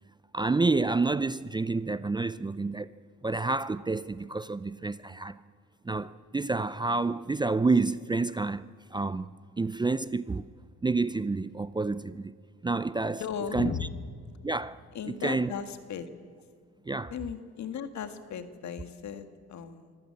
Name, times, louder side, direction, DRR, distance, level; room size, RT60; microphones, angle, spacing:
voice 1, 0.3-2.9 3.2-5.4 5.8-9.3 9.6-10.4 10.8-12.3 12.6-13.2 13.5-13.7 14.4-14.8 15.1-15.5 16.9-17.1, right 3 dB, 15° right, 0.5 m, -29 dB
voice 2, 13.1-13.9 14.9-16.1 17.1-20.0, left 7 dB, 65° left, 1.9 m, -36 dB
25.0 x 14.5 x 8.8 m
cardioid pair, 90°, 30 cm